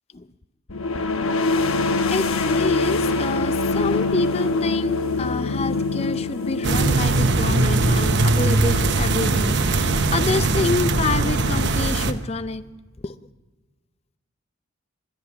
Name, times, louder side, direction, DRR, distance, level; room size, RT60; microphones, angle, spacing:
sound 1, 0.7-12.2, left 3 dB, 85° left, 1.1 m, -25 dB
voice 1, 2.1-12.6 13.0-13.2, left 3 dB, 30° left, 14 dB, 0.5 m, -28 dB
sound 2, 6.6-12.1, right 3 dB, 55° right, 0.9 m, -20 dB
23.5 x 9.8 x 5.8 m, 1.3 s
head